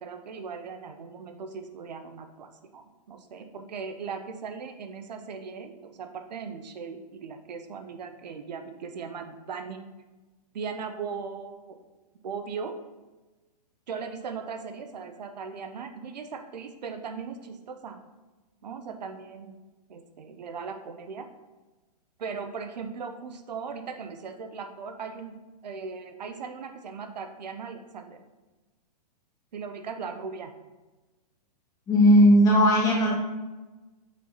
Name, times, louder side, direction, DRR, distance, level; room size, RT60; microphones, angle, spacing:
voice 1, 0.0-9.8 10.5-11.8 12.2-12.8 13.9-18.0 18.6-19.6 19.9-21.3 22.2-28.2 29.5-30.5, right 5 dB, 85° right, 7 dB, 0.7 m, -38 dB
voice 2, 31.9-33.1, equal, 15° left, -3 dB, 1.6 m, -17 dB
6.0 x 5.5 x 3.0 m, 1.2 s
hypercardioid pair, 155°, 21 cm